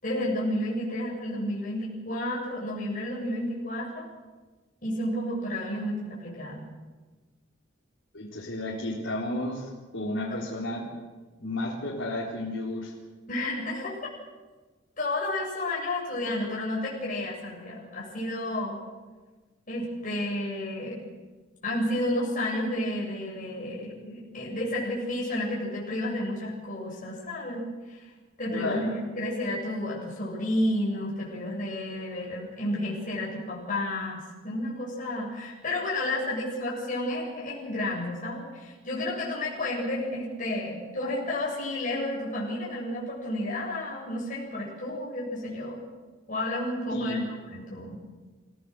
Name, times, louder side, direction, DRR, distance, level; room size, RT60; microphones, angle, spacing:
voice 1, 0.0-4.1 4.8-6.6 10.3-10.4 13.3-13.9 15.0-18.8 19.7-21.1 21.6-28.0 28.4-45.8 46.3-47.2 47.5-48.0, left 1 dB, 40° left, -5 dB, 7.3 m, -31 dB
voice 2, 8.1-10.8 11.4-12.9 28.5-28.9 46.9-47.3, left 1 dB, 75° left, -6 dB, 4.0 m, -32 dB
29.0 x 16.5 x 6.7 m, 1.3 s
head